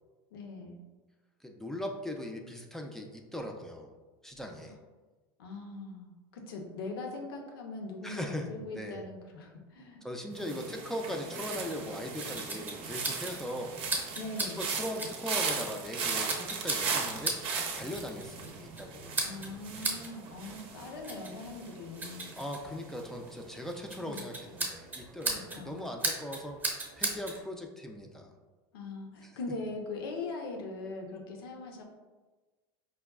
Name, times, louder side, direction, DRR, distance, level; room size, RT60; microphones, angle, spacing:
voice 1, 0.3-0.8 5.4-10.0 14.2-14.7 19.2-22.3 24.0-24.3 25.5-25.8 28.7-31.8, left 3 dB, 90° left, 2 dB, 0.7 m, -41 dB
voice 2, 1.4-3.9 4.2-4.8 8.0-9.0 10.0-14.1 14.6-17.4 17.7-19.2 22.3-28.3 29.2-29.3, left 1 dB, 5° left, 2 dB, 0.4 m, -39 dB
sound 1, 10.4-23.4 23.7-24.1, right 5 dB, 50° right, 0.6 m, -38 dB
sound 2, 11.7-27.4, right 2 dB, 15° right, 0.8 m, -39 dB
4.8 x 2.2 x 2.3 m, 1.3 s
supercardioid pair, 115°, 12 cm